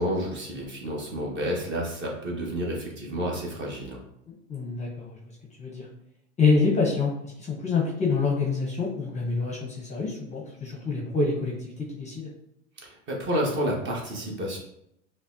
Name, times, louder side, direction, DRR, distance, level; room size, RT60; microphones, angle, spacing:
voice 1, 0.0-4.0 12.8-14.6, equal, 30° right, -2 dB, 1.1 m, -30 dB
voice 2, 4.3-5.2 5.6-5.9 6.4-12.3, left 4 dB, 20° left, -1 dB, 0.7 m, -26 dB
5.2 x 2.1 x 2.6 m, 0.77 s
hypercardioid pair, 115°, 36 cm